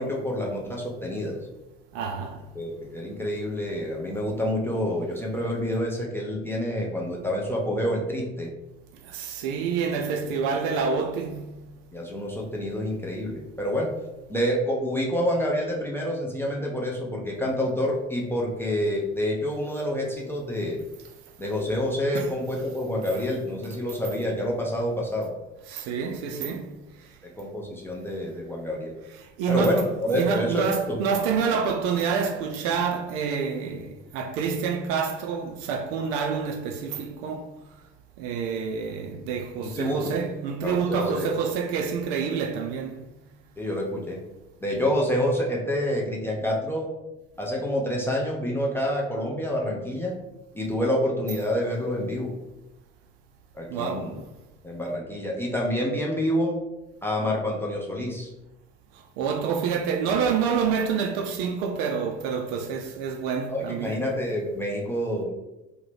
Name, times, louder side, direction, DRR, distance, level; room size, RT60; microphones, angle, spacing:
voice 1, 0.0-1.4 2.5-8.5 11.9-13.9 14.3-20.8 21.4-25.3 27.4-28.9 29.5-31.0 39.8-40.2 40.6-41.3 43.6-44.2 44.6-46.9 47.4-50.2 50.5-52.3 53.5-54.2 54.6-56.6 57.0-58.3 63.5-65.3, equal, 5° left, 0.4 m, -27 dB
voice 2, 1.9-2.5 8.9-11.5 22.1-22.3 25.7-27.2 29.2-37.6 38.2-43.1 53.7-54.2 58.9-64.1, right 6 dB, 55° right, 0.5 m, -28 dB
2.7 x 2.1 x 3.2 m
figure-of-eight pair, 55°, 36 cm